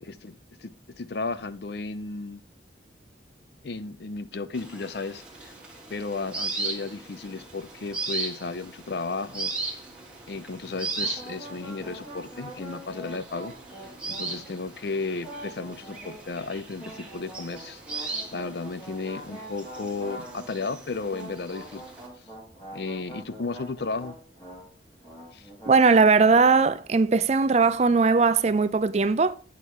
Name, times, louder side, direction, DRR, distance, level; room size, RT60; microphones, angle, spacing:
voice 1, 0.0-2.4 3.6-5.5 5.9-9.5 10.3-13.5 14.1-21.8 22.7-24.2 25.3-25.5, left 3 dB, 60° left, 0.5 m, -34 dB
sound 1, 4.5-22.1, right 3 dB, 5° right, 1.7 m, -38 dB
sound 2, 11.0-14.7 15.2-16.3 16.8-20.7 21.1-24.7 24.9-25.9, right 1 dB, 20° left, 3.1 m, -44 dB
voice 2, 25.7-29.3, right 4 dB, 35° right, 0.4 m, -19 dB
8.2 x 5.6 x 4.5 m
head